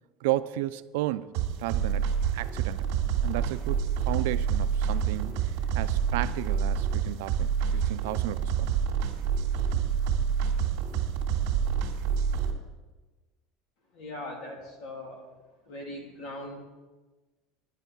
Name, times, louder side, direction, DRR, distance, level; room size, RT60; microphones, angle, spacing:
voice 1, 0.2-2.9 3.2-8.8, right 15 dB, 85° right, 14 dB, 0.5 m, -33 dB
sound 1, 1.3-12.5, right 7 dB, 60° right, 2.1 m, -27 dB
voice 2, 13.9-15.2 15.6-16.6, left 1 dB, 55° left, 0 dB, 3.2 m, -40 dB
10.5 x 10.5 x 5.5 m, 1.2 s
cardioid pair, 170°, 0 cm